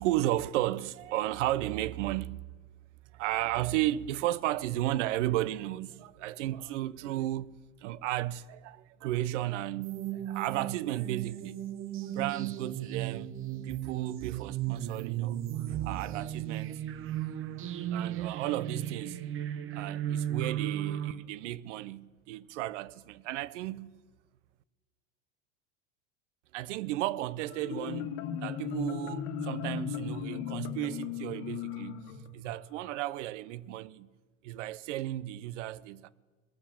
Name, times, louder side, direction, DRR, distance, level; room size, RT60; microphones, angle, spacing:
voice 1, 0.0-2.4 3.1-7.5 7.8-11.6 12.0-13.4 13.6-16.8 17.3-17.4 17.9-19.2 19.7-23.9 26.5-32.0 32.3-34.1 34.4-36.1, right 14 dB, 75° right, 0.7 m, -34 dB
sound 1, 9.8-21.1, right 11 dB, 35° right, 0.8 m, -35 dB
Marimba xylophone, 27.5-33.0, left 8 dB, 65° left, 1.4 m, -37 dB
21.5 x 7.4 x 5.8 m
hypercardioid pair, 105°, 37 cm